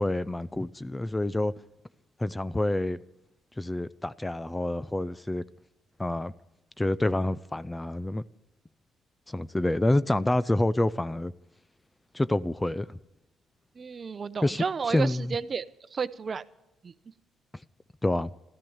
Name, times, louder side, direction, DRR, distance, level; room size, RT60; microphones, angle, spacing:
voice 1, 0.0-1.5 2.2-3.0 3.6-5.4 6.0-6.3 6.8-8.2 9.3-11.3 12.1-12.9 14.4-15.4 18.0-18.3, left 1 dB, 15° left, 0.5 m, -27 dB
voice 2, 13.8-15.6 15.9-16.4 16.8-16.9, right 5 dB, 40° right, 0.7 m, -32 dB
13.5 x 13.5 x 7.2 m
cardioid pair, 90°, 0 cm